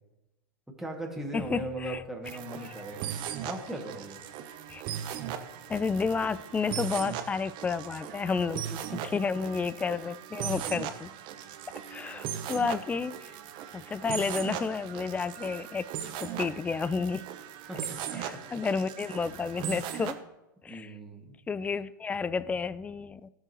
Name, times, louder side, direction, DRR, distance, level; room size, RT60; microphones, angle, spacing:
voice 1, 0.8-3.1 3.4-4.2 8.7-9.2 17.7-18.2 20.7-21.4, right 1 dB, 5° right, 0 dB, 2.2 m, -39 dB
voice 2, 1.3-2.0 4.7-4.8 5.7-8.6 8.9-11.1 11.9-13.3 13.7-15.9 16.2-17.2 18.1-20.2 20.6-20.9 21.5-23.3, left 5 dB, 15° left, 18 dB, 0.3 m, -31 dB
sound 1, 2.2-20.1, right 9 dB, 45° right, 0.9 m, -38 dB
16.5 x 6.6 x 3.1 m, 0.98 s
hypercardioid pair, 100°, 11 cm